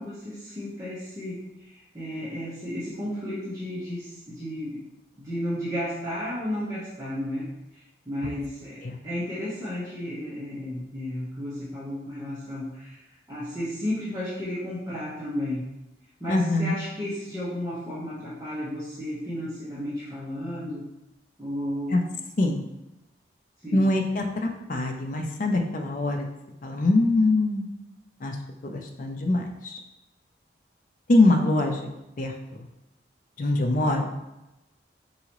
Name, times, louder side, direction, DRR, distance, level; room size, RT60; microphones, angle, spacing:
voice 1, 0.0-4.8 5.2-13.0 13.3-15.7 16.2-20.8 21.4-22.1 23.6-23.8, left 1 dB, 15° right, -12 dB, 0.9 m, -33 dB
voice 2, 16.3-16.8 21.9-22.0 22.4-22.6 23.7-26.3 26.6-27.7 28.2-28.4 28.6-29.8 31.1-31.9 32.2-32.6 33.4-34.1, left 2 dB, 45° left, 3 dB, 0.4 m, -23 dB
4.7 x 2.7 x 3.0 m, 0.96 s
head